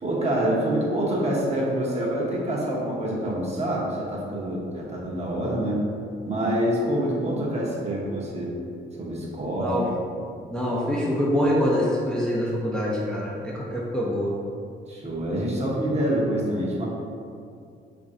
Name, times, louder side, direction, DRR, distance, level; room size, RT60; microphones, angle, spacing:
voice 1, 0.0-5.8 6.2-8.6 9.0-10.2 14.9-16.8, right 1 dB, 35° right, -4 dB, 0.8 m, -26 dB
voice 2, 9.6-9.9 10.5-14.4, equal, 5° left, -6 dB, 0.5 m, -25 dB
3.0 x 2.6 x 3.7 m, 2.4 s
cardioid pair, 90°, 20 cm